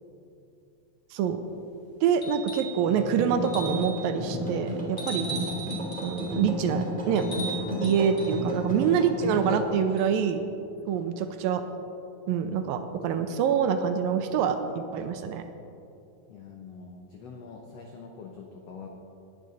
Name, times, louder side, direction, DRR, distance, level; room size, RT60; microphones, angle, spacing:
voice 1, 1.1-1.4 2.0-5.3 6.0-7.3 7.8-10.5 10.9-11.6 12.3-15.4, right 7 dB, 80° right, 8 dB, 2.3 m, -26 dB
sound 1, 2.2-2.8 3.4-4.0 5.0-6.4 7.2-8.4 10.0-10.1, right 3 dB, 5° left, 2.3 m, -37 dB
sound 2, 2.8-9.6, equal, 10° right, 2.6 m, -32 dB
voice 2, 16.3-18.9, left 5 dB, 80° left, 1 dB, 1.4 m, -45 dB
19.0 x 9.3 x 4.1 m, 2.7 s
omnidirectional pair, 4.3 m